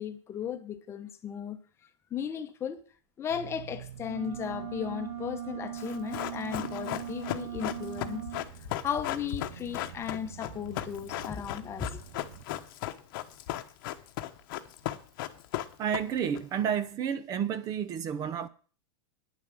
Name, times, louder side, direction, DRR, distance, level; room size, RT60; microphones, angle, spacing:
voice 1, 0.0-1.6 2.1-2.8 3.2-8.3 8.8-12.0, left 8 dB, 15° left, 1.0 m, -36 dB
sound 1, 3.3-12.4, right 10 dB, 70° right, 0.7 m, -48 dB
sound 2, 4.0-8.5, right 11 dB, 50° right, 1.5 m, -39 dB
Run, 5.8-16.4 16.7-16.8, left 14 dB, 45° left, 1.1 m, -36 dB
voice 2, 15.8-18.5, right 8 dB, 25° right, 0.7 m, -30 dB
10.0 x 7.3 x 7.7 m
supercardioid pair, 160°, 15 cm